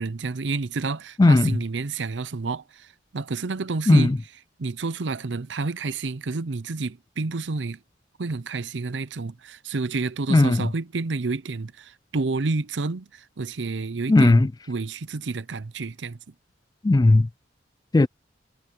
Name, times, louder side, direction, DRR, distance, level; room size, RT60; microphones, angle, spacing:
voice 1, 0.0-4.1 4.6-7.8 8.2-16.2, right 3 dB, 75° right, 0.7 m, -30 dB
voice 2, 1.2-1.6 3.9-4.2 10.3-10.7 14.1-14.5 16.8-17.3 17.9-18.1, left 2 dB, 20° left, 0.3 m, -16 dB
head